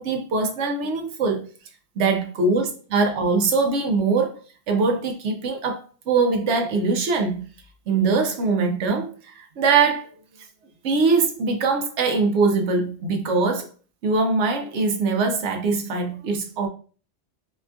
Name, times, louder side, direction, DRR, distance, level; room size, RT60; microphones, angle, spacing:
voice 1, 0.0-1.4 2.0-4.4 4.7-7.5 7.9-10.1 10.8-13.7 14.0-16.7, right 4 dB, 85° right, 0.9 m, -22 dB
4.2 x 2.5 x 2.2 m
omnidirectional pair, 1.1 m